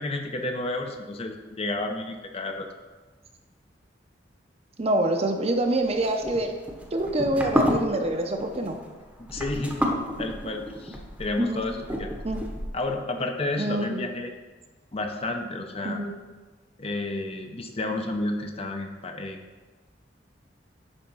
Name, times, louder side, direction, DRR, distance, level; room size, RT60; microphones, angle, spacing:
voice 1, 0.0-2.7 7.9-8.0 9.2-9.8 10.2-12.1 12.7-14.3 14.9-16.0 16.8-19.4, left 2 dB, 35° left, 4 dB, 0.7 m, -31 dB
voice 2, 4.8-6.5 6.9-8.8 11.4-11.6 12.2-12.4 13.6-14.0 15.8-16.1, right 1 dB, 35° right, 4 dB, 0.7 m, -26 dB
sound 1, 5.9-12.9, equal, 5° right, 0.9 m, -30 dB
9.8 x 3.5 x 5.5 m, 1.3 s
head